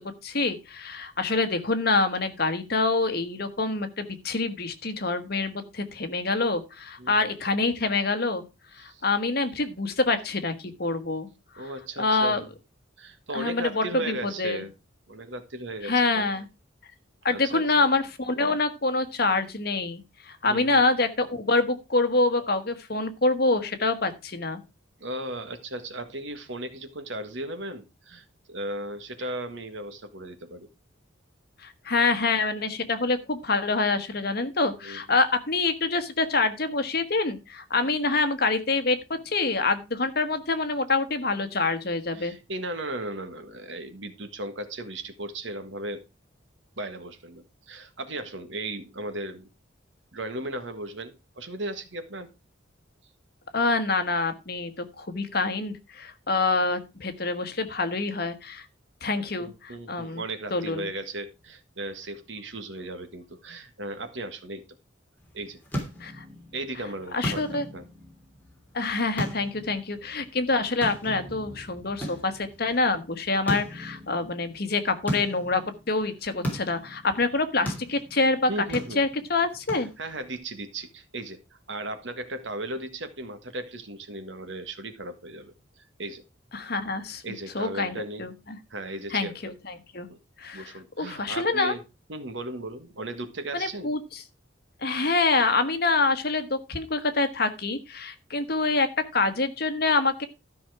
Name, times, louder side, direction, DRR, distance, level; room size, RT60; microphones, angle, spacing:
voice 1, 0.2-8.4 8.8-10.5 10.8-11.3 12.0-12.4 13.3-14.6 15.8-16.4 17.2-24.6 31.6-39.0 39.2-42.3 53.5-58.7 59.0-60.2 60.5-60.9 66.0-66.2 67.1-67.6 68.7-78.5 78.9-79.9 86.5-87.2 87.5-88.6 89.1-90.1 90.4-91.8 93.5-94.2 94.8-100.3, left 3 dB, 55° left, 9 dB, 1.4 m, -26 dB
voice 2, 7.0-7.3 8.8-9.0 11.6-12.5 13.0-14.7 15.1-16.3 17.3-17.8 20.4-20.8 25.0-30.7 34.8-35.2 37.8-37.9 42.1-46.0 46.8-49.5 50.1-52.3 59.4-64.6 65.3-65.6 66.5-67.8 78.5-79.0 80.0-81.4 81.7-85.5 86.0-86.2 87.2-88.3 88.7-89.3 90.1-90.2 90.5-91.8 92.1-93.9, right 1 dB, 70° right, 9 dB, 1.6 m, -36 dB
sound 1, 65.2-80.4, equal, 10° left, 3.0 m, -38 dB
13.0 x 5.8 x 4.8 m, 0.28 s
head